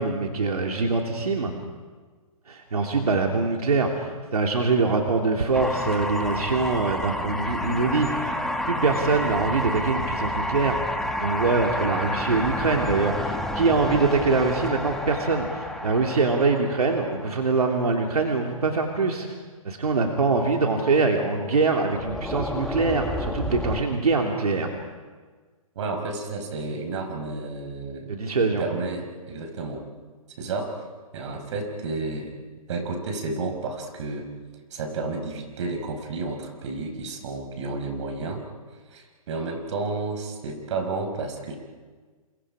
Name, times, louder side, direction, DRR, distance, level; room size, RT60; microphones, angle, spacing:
voice 1, 0.0-1.5 2.5-8.4 8.7-10.8 11.2-19.3 19.6-24.7 28.1-28.6, right 3 dB, 90° right, 2 dB, 3.0 m, -24 dB
sound 1, 5.5-17.8 21.9-23.8, left 1 dB, ahead, 1.6 m, -30 dB
voice 2, 25.8-28.1 28.4-29.8 30.4-30.8 31.1-32.3 32.7-34.3 34.7-38.4 38.9-41.6, right 3 dB, 55° right, 4 dB, 5.3 m, -31 dB
28.5 x 28.5 x 5.0 m, 1.4 s
hypercardioid pair, 140°, 19 cm